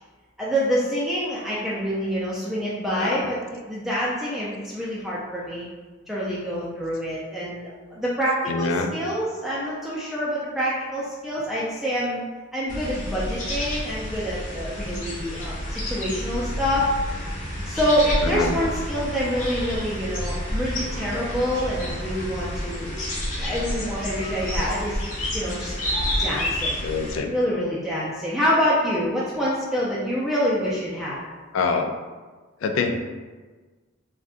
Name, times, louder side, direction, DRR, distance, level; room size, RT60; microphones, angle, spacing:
voice 1, 0.4-5.7 6.1-12.2 12.5-16.9 17.6-23.0 23.4-25.0 25.3-25.7 26.2-26.8 27.3-31.2, equal, ahead, -7 dB, 0.3 m, -26 dB
voice 2, 8.5-8.9 18.2-18.6 26.8-27.3 31.5-32.0 32.6-33.0, left 4 dB, 75° left, 5 dB, 0.3 m, -25 dB
sound 1, 12.7-27.2, equal, 40° left, 0.6 m, -29 dB
2.5 x 2.2 x 3.6 m, 1.4 s
head